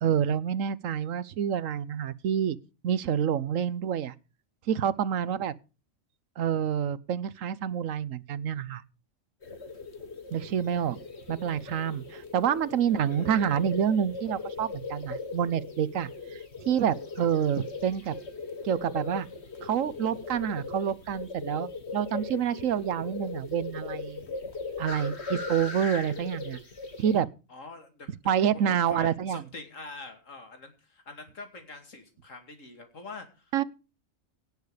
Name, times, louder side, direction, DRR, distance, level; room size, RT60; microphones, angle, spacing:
voice 1, 0.0-2.6 2.8-4.1 4.7-5.5 6.4-8.8 10.3-11.0 11.3-16.4 16.7-18.1 18.6-19.3 19.6-24.2 24.8-26.6 27.0-27.3 28.3-29.4 33.5-33.6, right 8 dB, 80° right, 1.2 m, -28 dB
sound 1, 9.4-27.2, left 4 dB, 55° left, 2.1 m, -39 dB
voice 2, 12.9-13.3 27.5-28.3 28.6-33.5, left 3 dB, 70° left, 2.8 m, -45 dB
17.5 x 6.5 x 5.0 m
omnidirectional pair, 1.4 m